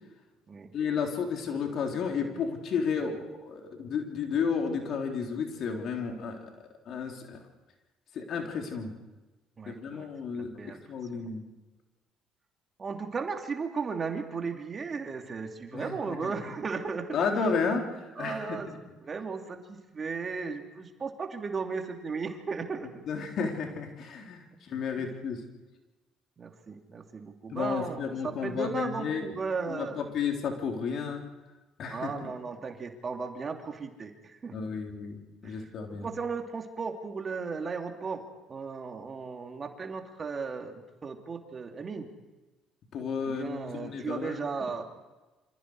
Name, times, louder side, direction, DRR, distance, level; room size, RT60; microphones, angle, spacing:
voice 1, 0.7-6.4 6.9-7.4 8.1-8.9 9.7-11.4 15.7-16.3 17.1-18.8 23.1-25.4 27.5-29.3 29.7-31.2 31.8-32.3 34.5-36.1 42.9-44.5, left 5 dB, 60° left, 2 dB, 3.7 m, -32 dB
voice 2, 9.6-10.1 10.3-10.8 11.1-11.3 12.8-17.3 18.2-18.7 19.0-22.9 25.0-25.1 26.4-30.0 31.9-34.5 35.4-35.7 36.0-38.2 38.5-42.1 43.3-44.8, right 5 dB, 40° right, 4 dB, 3.0 m, -36 dB
27.5 x 26.0 x 4.8 m, 1.1 s
hypercardioid pair, 60°, 0 cm